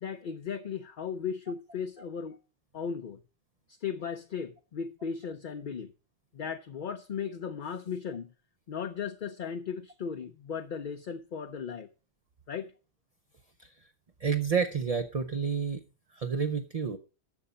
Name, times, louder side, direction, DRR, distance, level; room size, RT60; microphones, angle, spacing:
voice 1, 0.0-2.4 2.7-3.2 3.7-5.9 6.3-8.3 8.7-11.9 12.5-12.7, left 7 dB, 55° left, 0.8 m, -36 dB
voice 2, 14.2-15.8 16.2-17.0, right 6 dB, 40° right, 0.7 m, -29 dB
12.0 x 7.0 x 5.1 m
omnidirectional pair, 1.1 m